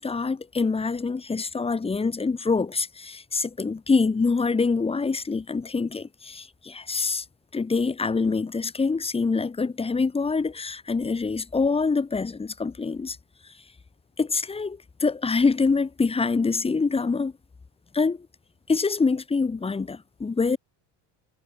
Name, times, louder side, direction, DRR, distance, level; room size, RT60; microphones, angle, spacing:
voice 1, 0.0-7.2 7.5-13.2 14.2-17.3 17.9-18.3 18.7-20.6, left 4 dB, 15° left, 2.1 m, -25 dB
cardioid pair, 160°, 43 cm